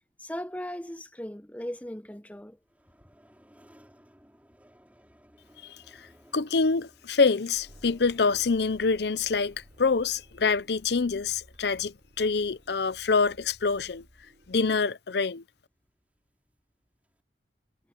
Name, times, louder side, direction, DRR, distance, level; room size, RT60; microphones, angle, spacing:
voice 1, 0.2-2.6, equal, 10° left, 0.9 m, -37 dB
sound 1, 2.3-17.2, equal, 10° right, 6.4 m, -61 dB
voice 2, 6.3-14.0 14.5-15.4, left 4 dB, 60° left, 0.6 m, -26 dB
sound 2, 7.5-14.9, equal, 45° right, 8.0 m, -56 dB
head